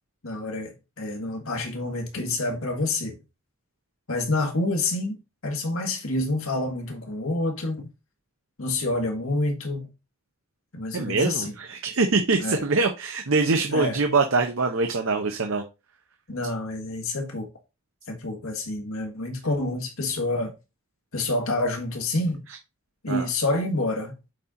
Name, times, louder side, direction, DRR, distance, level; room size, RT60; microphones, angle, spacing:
voice 1, 0.2-3.2 4.1-7.9 8.6-9.9 10.7-11.5 12.4-12.6 13.7-14.0 16.3-17.5 18.1-20.5 21.1-22.4 23.0-24.1, left 2 dB, 80° left, 1.8 m, -28 dB
voice 2, 10.9-15.7 23.1-23.3, right 3 dB, 70° right, 0.8 m, -24 dB
7.7 x 4.4 x 3.8 m
head